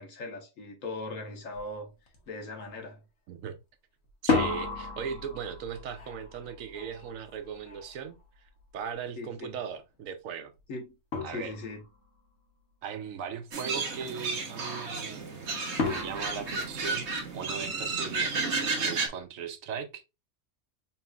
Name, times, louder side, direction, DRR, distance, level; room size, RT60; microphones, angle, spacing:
voice 1, 0.0-1.9 2.3-3.0 9.2-9.5 10.7-10.9 11.3-11.8, left 2 dB, 80° left, 1.5 m, -39 dB
sound 1, 1.5-1.7 2.1-2.6 4.1-8.9 10.6-10.7 11.1-12.0 15.8-17.5, left 4 dB, 55° left, 1.4 m, -34 dB
voice 2, 3.3-3.6 4.2-8.2 8.7-10.5 11.2-11.5 12.8-15.5 15.8-20.0, right 7 dB, 85° right, 1.1 m, -38 dB
sound 2, 13.5-19.1, right 4 dB, 60° right, 1.3 m, -32 dB
5.6 x 3.1 x 2.3 m
omnidirectional pair, 1.4 m